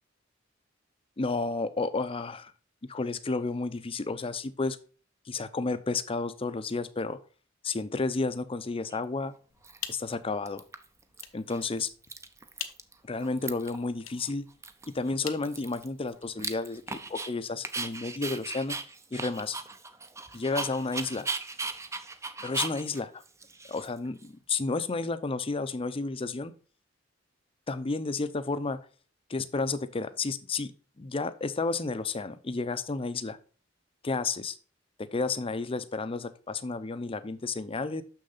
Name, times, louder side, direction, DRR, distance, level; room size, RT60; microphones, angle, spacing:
voice 1, 1.2-2.5 2.9-4.8 5.3-7.2 7.6-9.3 9.9-10.6 11.3-11.9 13.0-14.4 14.9-18.8 19.1-19.6 20.3-21.3 22.4-23.2 23.7-26.5 27.7-28.8 29.3-30.7 31.0-33.4 34.0-34.6 35.0-38.0, left 3 dB, 30° left, 12 dB, 0.6 m, -31 dB
Dog, 8.9-9.0 9.6-10.1 10.5-11.2 11.5-11.6 11.9-12.9 13.2-13.8 14.2-14.3 14.6-17.3 17.6-24.3, right 3 dB, 15° right, 0.6 m, -37 dB
sound 1, 9.5-16.3, left 10 dB, 80° left, 0.8 m, -46 dB
6.5 x 6.5 x 4.0 m, 0.39 s
head